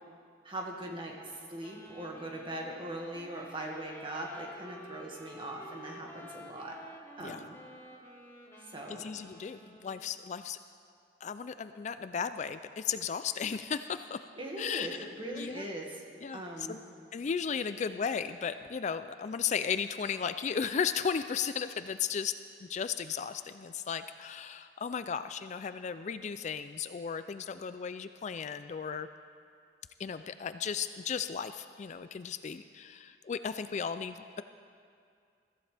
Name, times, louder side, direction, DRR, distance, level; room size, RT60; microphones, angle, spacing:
voice 1, 0.4-1.1 1.5-6.8 7.2-7.6 8.7-9.0 14.4-16.0 16.3-16.8, right 1 dB, 30° right, -1 dB, 1.9 m, -40 dB
Wind instrument woodwind instrument, 1.6-10.1, equal, 15° left, 1.4 m, -51 dB
voice 2, 9.0-10.6 11.2-14.2 14.6-14.9 15.3-15.6 16.2-16.4 16.7-16.8 17.1-22.3 22.6-29.1 30.0-34.4, left 6 dB, 40° left, 11 dB, 0.3 m, -35 dB
21.5 x 15.0 x 3.4 m, 2.3 s
head